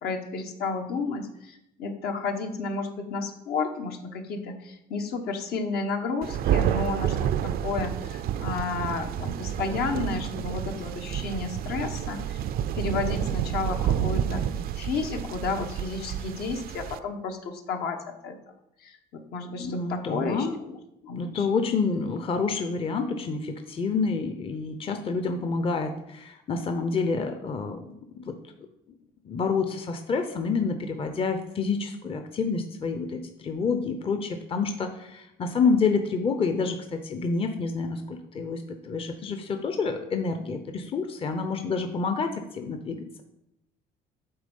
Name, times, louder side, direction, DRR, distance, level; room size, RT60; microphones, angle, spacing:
voice 1, 0.0-12.4 12.7-14.4 14.7-18.4 18.8-20.8 21.1-21.5, left 4 dB, 70° left, 4 dB, 1.1 m, -32 dB
Thunder, 6.2-17.0, right 10 dB, 65° right, 0.4 m, -29 dB
voice 2, 19.6-20.6 21.1-28.3 29.2-43.2, left 4 dB, 35° left, 6 dB, 0.7 m, -28 dB
8.8 x 3.6 x 5.4 m, 0.84 s
cardioid pair, 110°, 17 cm